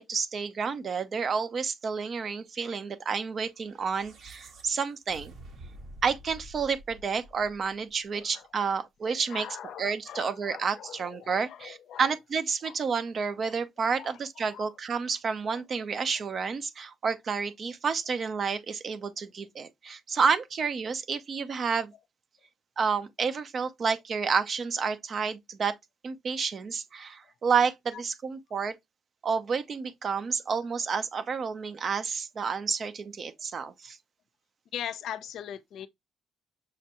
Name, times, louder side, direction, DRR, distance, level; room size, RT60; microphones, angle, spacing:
voice 1, 0.0-5.3 6.0-9.5 9.8-21.9 22.8-25.7 26.0-28.7 29.2-34.0, right 5 dB, 50° right, 0.7 m, -30 dB
sound 1, 3.6-8.0, right 1 dB, 70° right, 1.6 m, -49 dB
voice 2, 8.1-8.7 9.0-12.1 12.6-12.8 13.4-13.5 13.9-14.7 15.5-15.6 21.6-21.7 27.9-28.0 34.7-35.9, left 10 dB, 75° left, 0.5 m, -41 dB
6.3 x 2.3 x 2.9 m
cardioid pair, 90°, 0 cm